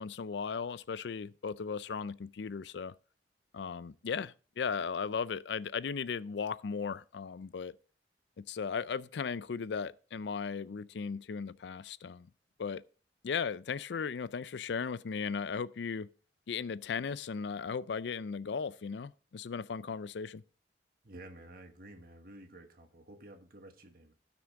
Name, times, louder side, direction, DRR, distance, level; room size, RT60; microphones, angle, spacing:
voice 1, 0.0-2.9 3.5-7.7 8.5-12.3 12.6-12.8 13.2-16.1 16.5-20.4, left 6 dB, 70° left, 0.4 m, -36 dB
voice 2, 21.0-24.1, right 1 dB, 55° right, 1.4 m, -52 dB
16.5 x 6.1 x 3.6 m
head